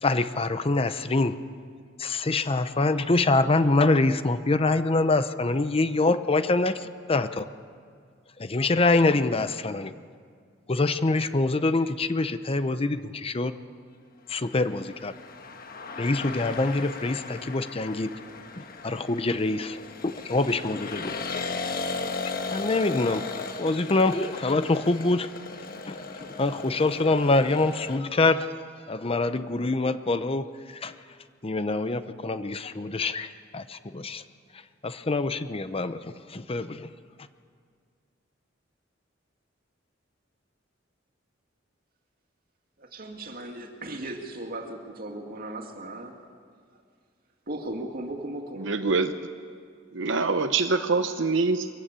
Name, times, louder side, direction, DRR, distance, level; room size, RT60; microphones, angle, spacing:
voice 1, 0.0-1.4 2.0-7.5 8.4-9.9 10.7-13.5 14.3-15.1 16.0-18.1 18.6-19.8 20.0-21.1 22.5-23.3 23.6-25.3 25.9-28.5 28.9-30.9 31.4-34.2 34.8-36.0 36.3-36.9, left 2 dB, 30° left, 12 dB, 0.7 m, -25 dB
sound 1, 14.5-28.0, left 4 dB, 50° left, 1.4 m, -36 dB
voice 2, 42.8-46.1 47.5-48.7, right 1 dB, 50° right, 3 dB, 2.5 m, -37 dB
voice 3, 48.6-49.1 49.9-51.7, right 4 dB, 70° right, 8 dB, 0.8 m, -24 dB
23.0 x 15.0 x 8.9 m, 2.1 s
head